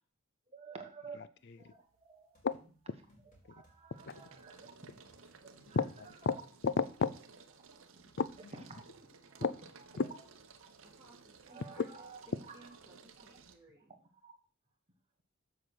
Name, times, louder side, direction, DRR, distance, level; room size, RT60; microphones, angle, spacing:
voice 1, 0.5-1.3 1.6-2.4 3.5-4.7 5.3-5.8 6.2-6.3 7.7-7.8 8.7-8.8 9.3-9.5 11.5-12.2 13.2-13.3 13.9-14.0 14.2-14.4, right 4 dB, 30° right, 1.4 m, -51 dB
sound 1, 1.5-2.0 2.4-13.6, right 4 dB, 65° right, 1.0 m, -58 dB
sound 2, 2.3-3.8 4.1-7.3, equal, 35° left, 4.2 m, -66 dB
voice 2, 5.7-6.4 6.6-7.1 8.2-8.6 9.4-9.5 10.0-10.1 11.8-11.9, left 5 dB, 50° left, 0.5 m, -33 dB
voice 3, 10.8-11.9 12.3-14.0, right 2 dB, 10° right, 2.1 m, -60 dB
7.6 x 5.9 x 6.4 m
head